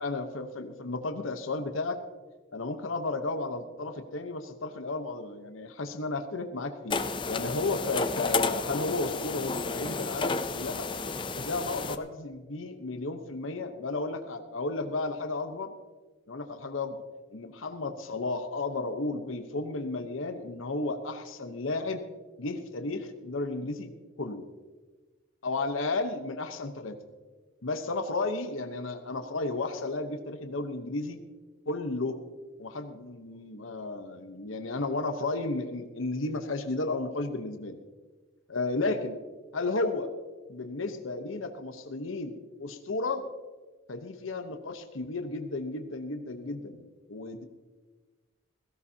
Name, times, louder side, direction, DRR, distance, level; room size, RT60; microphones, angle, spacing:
voice 1, 0.0-2.0 2.5-7.0 7.3-10.9 11.3-15.7 16.3-17.0 17.3-22.0 22.4-23.9 24.2-24.5 25.4-27.0 27.6-31.2 31.7-32.2 32.6-37.8 38.5-39.2 39.5-40.1 40.5-42.3 42.6-43.2 43.9-47.4, left 3 dB, 85° left, 7 dB, 1.0 m, -33 dB
sound 1, 6.9-12.0, left 4 dB, 25° left, 0.5 m, -31 dB
16.5 x 16.0 x 2.8 m, 1.3 s
head